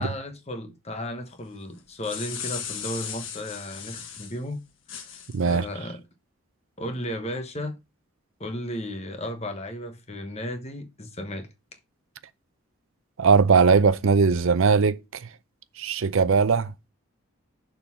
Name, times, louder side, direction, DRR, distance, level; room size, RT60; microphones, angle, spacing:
voice 1, 0.0-4.6 4.9-5.1 5.4-6.0 6.8-7.8 8.4-11.5, left 1 dB, 30° left, 1.1 m, -34 dB
sound 1, 1.8-4.4 4.9-5.6, left 8 dB, 60° left, 1.3 m, -36 dB
voice 2, 5.3-5.6 13.2-15.3 15.8-16.7, right 5 dB, 70° right, 0.5 m, -20 dB
6.9 x 3.9 x 5.6 m
head